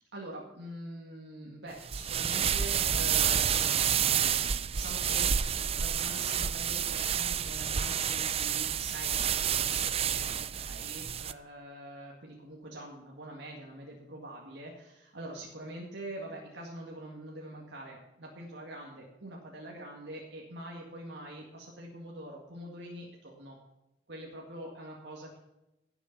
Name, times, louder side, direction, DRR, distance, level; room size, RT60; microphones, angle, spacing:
voice 1, 0.1-23.6 24.1-25.4, right 1 dB, 75° right, -2 dB, 2.1 m, -44 dB
sound 1, 1.8-11.3, right 8 dB, 35° right, 0.5 m, -29 dB
17.5 x 7.0 x 6.0 m, 0.92 s
head